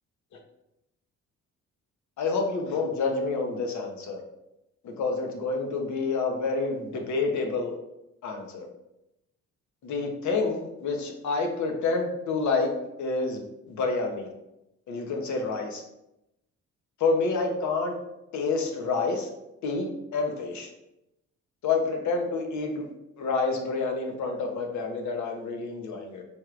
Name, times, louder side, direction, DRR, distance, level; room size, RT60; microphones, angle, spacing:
voice 1, 2.2-4.2 4.8-7.7 8.2-8.7 9.8-12.7 13.0-14.3 14.9-15.8 17.0-18.0 18.3-19.3 19.6-20.7 21.6-22.9 23.2-26.2, left 4 dB, 70° left, 2 dB, 0.8 m, -28 dB
4.4 x 3.3 x 2.4 m, 0.88 s
cardioid pair, 90°, 30 cm